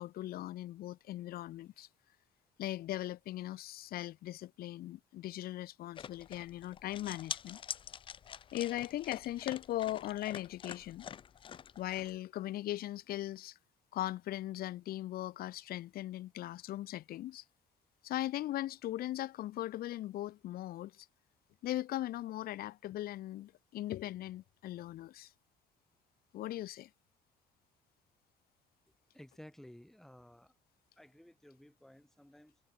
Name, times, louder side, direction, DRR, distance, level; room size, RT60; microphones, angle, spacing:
voice 1, 0.0-1.9 2.6-7.6 8.5-11.1 11.8-13.6 13.9-17.4 18.0-21.1 21.6-25.3 26.3-26.9, left 14 dB, 65° left, 0.7 m, -39 dB
sound 1, 6.0-12.1, left 8 dB, 30° left, 0.3 m, -46 dB
voice 2, 29.1-30.5 31.0-32.6, left 1 dB, ahead, 1.6 m, -55 dB
cardioid pair, 110°, 17 cm